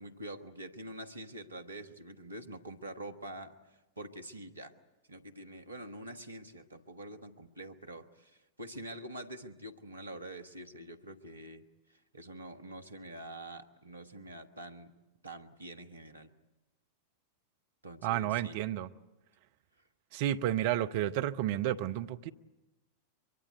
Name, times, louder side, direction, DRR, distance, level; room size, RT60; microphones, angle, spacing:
voice 1, 0.0-4.7 5.1-11.6 11.9-15.0 15.2-16.3 17.8-18.6, right 1 dB, 80° right, 1.3 m, -46 dB
voice 2, 18.0-18.9 20.1-22.3, right 12 dB, 50° right, 0.7 m, -31 dB
24.0 x 23.0 x 8.1 m
figure-of-eight pair, 90°, 0 cm